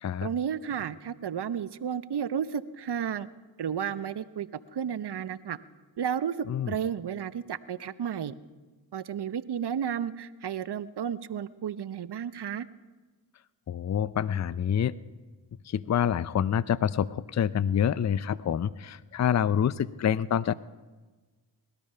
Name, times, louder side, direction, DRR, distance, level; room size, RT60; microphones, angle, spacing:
voice 1, 0.2-3.3 3.6-5.6 6.0-6.4 6.7-8.3 8.9-12.7, right 8 dB, 55° right, 15 dB, 0.8 m, -32 dB
voice 2, 13.7-14.9 15.7-20.6, left 9 dB, 35° left, 18 dB, 0.5 m, -27 dB
20.0 x 12.5 x 5.6 m, 1.3 s
supercardioid pair, 40°, 48 cm